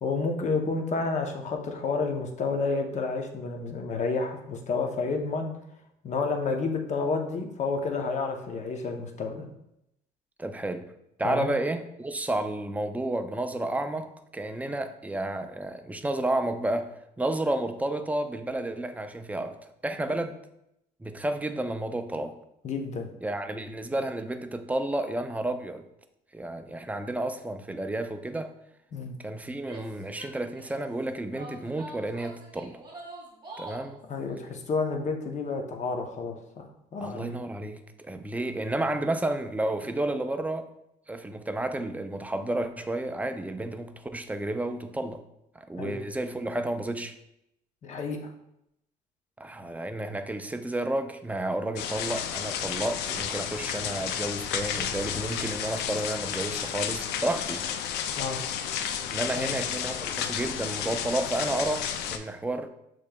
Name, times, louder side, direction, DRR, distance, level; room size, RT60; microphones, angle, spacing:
voice 1, 0.0-5.5 6.0-9.5 11.2-11.5 22.6-23.1 28.9-29.1 34.0-37.4 45.8-46.0 47.8-48.3 58.2-58.4 59.4-59.6, left 4 dB, 45° left, 3 dB, 0.7 m, -30 dB
voice 2, 10.4-10.9 11.2-20.3 21.0-22.3 23.2-25.8 26.3-28.5 29.2-32.8 33.6-34.0 37.0-40.7 41.1-45.2 45.5-47.2 49.4-57.7 59.1-62.7, right 1 dB, 10° right, 7 dB, 0.3 m, -31 dB
Female speech woman speaking / Yell, 29.6-30.8 31.3-34.0, right 2 dB, 25° right, 1.1 m, -44 dB
sound 1, 51.8-62.2, left 9 dB, 80° left, 0.4 m, -32 dB
6.6 x 3.0 x 2.3 m, 0.81 s
cardioid pair, 110°, 17 cm